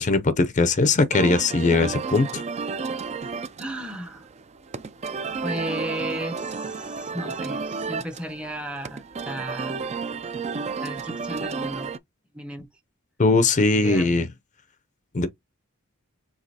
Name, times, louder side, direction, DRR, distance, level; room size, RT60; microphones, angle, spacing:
voice 1, 0.0-2.4 13.2-14.3 15.1-15.3, left 3 dB, 35° left, 0.5 m, -20 dB
sound 1, 1.1-12.0, right 4 dB, 30° right, 0.4 m, -32 dB
voice 2, 3.6-4.3 5.4-10.0 10.8-11.9 12.3-12.7 13.8-14.1, right 1 dB, 5° right, 0.8 m, -34 dB
5.1 x 3.6 x 2.8 m
head